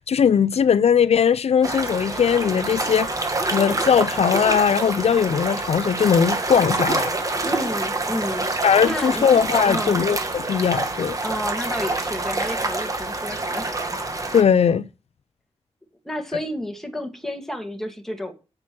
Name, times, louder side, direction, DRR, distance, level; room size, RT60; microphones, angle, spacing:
voice 1, 0.0-7.1 8.6-11.2 14.3-14.9, left 7 dB, 75° left, 0.5 m, -19 dB
sound 1, 1.6-14.4, right 2 dB, 30° right, 2.0 m, -26 dB
voice 2, 7.4-8.5 8.8-9.3 9.6-10.0 11.2-13.8 16.0-18.3, left 1 dB, 5° left, 2.2 m, -30 dB
8.8 x 8.8 x 6.0 m
wide cardioid pair, 135°, 11 cm